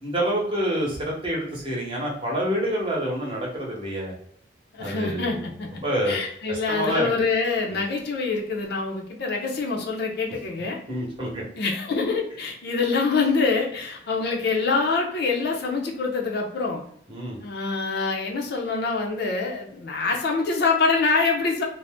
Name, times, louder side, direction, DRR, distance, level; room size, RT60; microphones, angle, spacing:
voice 1, 0.0-4.1 4.8-5.5 5.8-6.2 6.5-7.1 7.7-7.8 10.9-11.4 17.1-17.4, equal, 25° right, -3 dB, 0.8 m, -27 dB
voice 2, 4.7-5.7 6.1-10.8 11.5-16.8 17.4-21.6, left 4 dB, 60° left, 0 dB, 0.5 m, -25 dB
2.5 x 2.0 x 3.4 m, 0.66 s
head